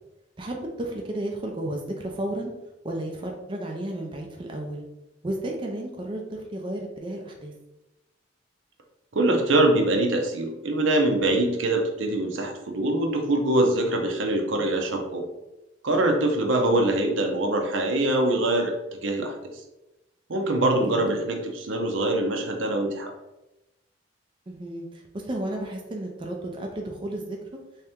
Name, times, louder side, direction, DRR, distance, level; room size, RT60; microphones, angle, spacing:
voice 1, 0.4-2.5 2.8-4.8 5.2-7.5 16.7-16.9 20.8-21.2 24.5-27.6, right 1 dB, 25° right, 1 dB, 0.4 m, -33 dB
voice 2, 9.1-15.2 15.8-18.7 19.0-19.3 20.3-23.1, right 1 dB, 75° right, 2 dB, 0.7 m, -23 dB
3.3 x 2.9 x 3.5 m, 0.98 s
head